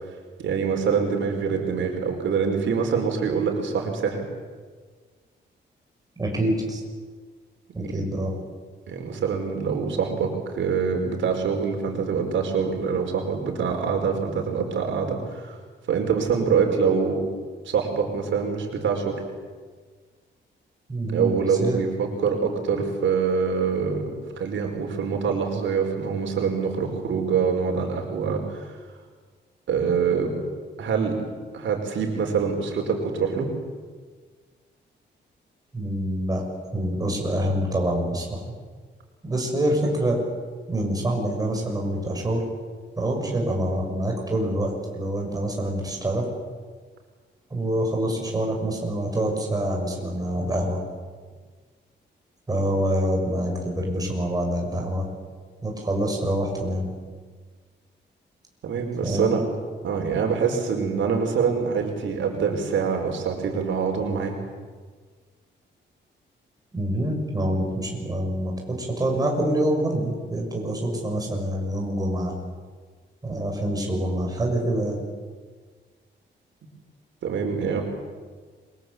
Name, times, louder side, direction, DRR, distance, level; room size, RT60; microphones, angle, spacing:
voice 1, 0.4-4.3 7.8-7.9 8.9-15.6 15.9-17.3 17.6-19.2 21.1-28.7 29.7-30.3 30.8-31.2 31.5-33.5 58.6-59.4 59.8-64.3 77.2-77.8, right 6 dB, 85° right, 2 dB, 5.0 m, -25 dB
voice 2, 6.2-6.8 7.7-8.3 20.9-21.8 35.7-36.5 36.7-38.4 39.2-40.2 40.7-42.4 43.0-46.3 47.5-50.8 52.5-55.1 55.6-56.9 59.0-59.4 66.7-72.3 73.2-75.0, right 1 dB, 20° right, 0 dB, 6.7 m, -26 dB
29.0 x 23.0 x 8.2 m, 1.5 s
wide cardioid pair, 150°, 19 cm